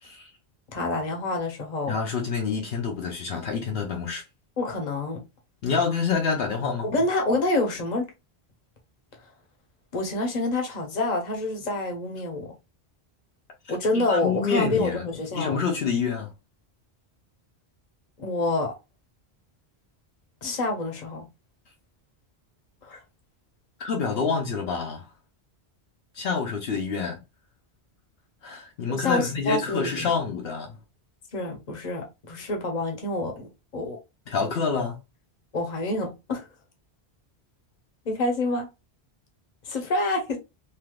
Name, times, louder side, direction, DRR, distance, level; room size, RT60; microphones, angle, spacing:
voice 1, 0.7-2.0 4.6-5.2 6.8-8.1 9.9-12.5 13.7-15.6 18.2-18.7 20.4-21.2 22.8-23.0 28.9-30.1 31.3-34.0 35.5-36.5 38.0-38.7 39.7-40.4, left 2 dB, 45° left, 0.9 m, -27 dB
voice 2, 1.9-4.2 5.6-6.9 13.6-15.1 15.3-16.3 22.9-23.0 23.8-25.1 26.1-27.2 28.4-30.8 34.3-35.0, left 5 dB, 70° left, 0.9 m, -27 dB
3.3 x 2.7 x 2.2 m
omnidirectional pair, 1.1 m